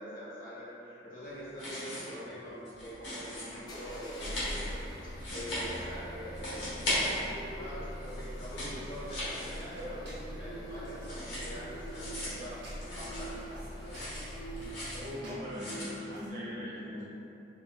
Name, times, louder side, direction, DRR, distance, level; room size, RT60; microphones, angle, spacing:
voice 1, 0.0-12.6 12.9-13.5, equal, 45° left, -10 dB, 0.9 m, -44 dB
sound 1, 1.4-2.3 2.5-3.6 4.0-6.1 6.3-7.6 7.9-10.1 10.4-13.5 13.8-15.1 15.5-15.9, left 1 dB, 75° left, 1.1 m, -38 dB
sound 2, 2.7-15.3, equal, 20° left, 0.3 m, -44 dB
sound 3, 9.4-16.3, right 1 dB, 90° right, 1.1 m, -46 dB
voice 2, 15.0-17.0, equal, 45° right, -8 dB, 0.7 m, -40 dB
4.1 x 2.1 x 2.3 m, 2.8 s
head